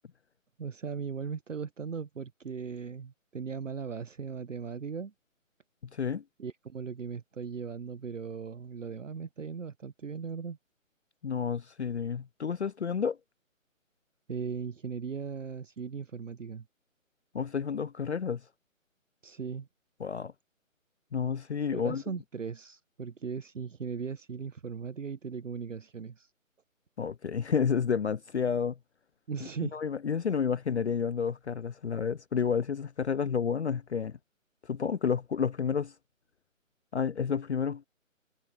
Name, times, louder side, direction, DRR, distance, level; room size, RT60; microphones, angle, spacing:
voice 1, 0.6-5.1 6.4-10.6 14.3-16.6 19.2-19.7 21.7-26.3 29.3-29.8, right 6 dB, 65° right, 0.9 m, -38 dB
voice 2, 5.9-6.2 11.2-13.2 17.3-18.4 20.0-20.3 21.1-22.0 27.0-28.8 29.6-34.2 34.6-35.9 36.9-37.9, left 6 dB, 55° left, 0.5 m, -30 dB
figure-of-eight pair, 150°, 40 cm